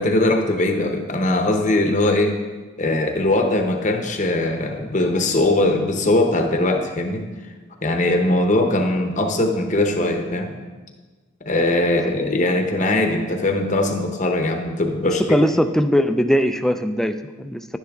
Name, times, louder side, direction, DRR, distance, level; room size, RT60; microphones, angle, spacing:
voice 1, 0.0-2.4 2.8-7.2 7.8-10.5 11.4-15.7, left 2 dB, 35° left, 4 dB, 0.8 m, -20 dB
voice 2, 15.0-17.7, equal, ahead, 9 dB, 0.3 m, -20 dB
10.5 x 10.5 x 3.5 m, 1.3 s
head